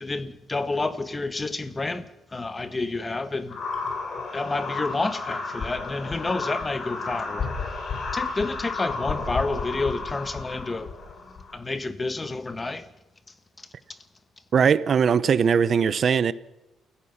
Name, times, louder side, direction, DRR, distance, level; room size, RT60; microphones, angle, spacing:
voice 1, 0.0-2.0 2.3-3.5 4.3-7.5 8.1-10.9 11.5-12.8, left 3 dB, 20° left, 1.4 m, -29 dB
sound 1, 3.5-11.5, left 4 dB, 50° left, 4.6 m, -32 dB
voice 2, 14.5-16.3, right 6 dB, 50° right, 0.9 m, -20 dB
28.5 x 16.0 x 5.9 m
cardioid pair, 105°, 0 cm